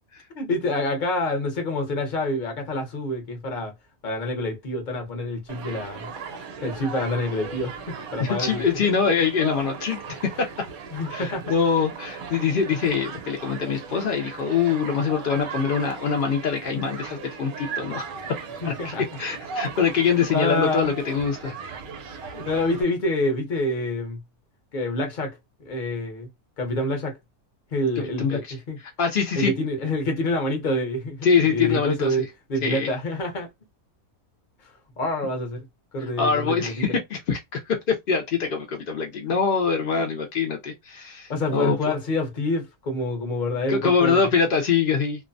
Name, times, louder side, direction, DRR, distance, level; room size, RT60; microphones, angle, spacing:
voice 1, 0.3-3.7 4.0-6.1 6.3-8.6 10.1-10.2 10.9-11.5 18.6-19.0 20.2-20.9 22.3-24.2 24.7-25.4 25.6-26.3 26.6-27.2 27.7-28.4 28.7-28.8 29.3-33.5 34.6-34.7 35.0-35.7 35.9-36.8 39.9-40.1 41.3-44.3, left 1 dB, 45° left, 0.7 m, -27 dB
Human group actions, 5.5-22.8, right 6 dB, 75° right, 1.1 m, -37 dB
voice 2, 8.2-10.5 11.1-18.1 18.6-18.9 19.2-21.6 28.0-28.5 29.0-29.5 31.2-32.2 32.6-32.9 36.0-41.9 43.7-45.2, left 6 dB, 80° left, 0.4 m, -24 dB
2.6 x 2.1 x 2.5 m
omnidirectional pair, 1.6 m